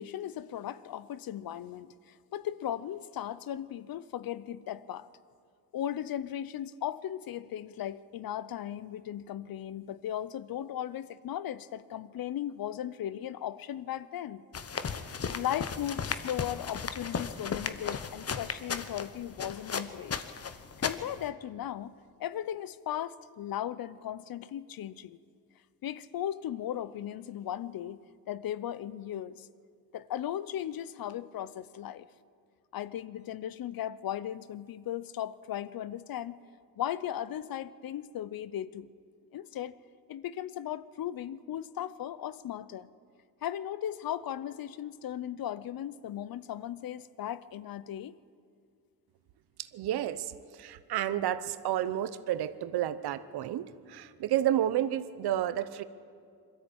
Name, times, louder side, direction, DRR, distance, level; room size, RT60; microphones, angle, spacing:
voice 1, 0.0-5.1 5.7-14.4 15.3-20.1 20.8-21.9 22.2-25.2 25.8-28.0 28.3-29.5 29.9-32.1 32.7-36.4 36.8-38.9 39.3-39.8 40.1-42.9 43.4-48.1, left 11 dB, 65° left, 17 dB, 0.8 m, -37 dB
sound 1, 14.5-21.3, left 6 dB, 40° left, 1.1 m, -36 dB
voice 2, 49.6-55.8, right 12 dB, 80° right, 14 dB, 1.0 m, -31 dB
21.5 x 13.5 x 8.8 m, 2.2 s
cardioid pair, 75°, 38 cm